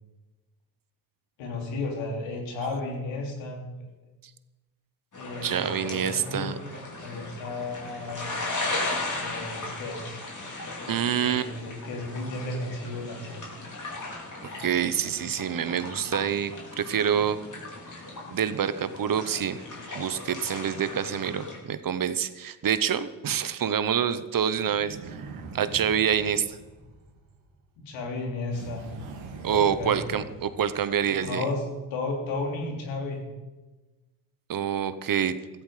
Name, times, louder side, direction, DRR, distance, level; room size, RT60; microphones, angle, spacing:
voice 1, 1.4-3.9 5.2-6.5 7.0-8.3 9.1-10.2 11.1-13.5 27.8-28.9 29.5-30.2 31.2-31.6 31.9-33.2, left 2 dB, 90° left, 1 dB, 3.2 m, -34 dB
sound 1, 5.1-21.6, left 2 dB, 40° left, 4.9 m, -37 dB
voice 2, 5.4-6.5 10.9-11.5 14.6-17.4 18.3-19.6 19.9-25.3 25.5-26.6 29.4-31.5 34.5-35.4, right 8 dB, 45° right, 13 dB, 1.0 m, -27 dB
sound 2, 24.5-27.6 28.5-31.2, right 4 dB, 85° right, 2.9 m, -43 dB
15.0 x 14.5 x 5.0 m, 1.2 s
cardioid pair, 80°, 45 cm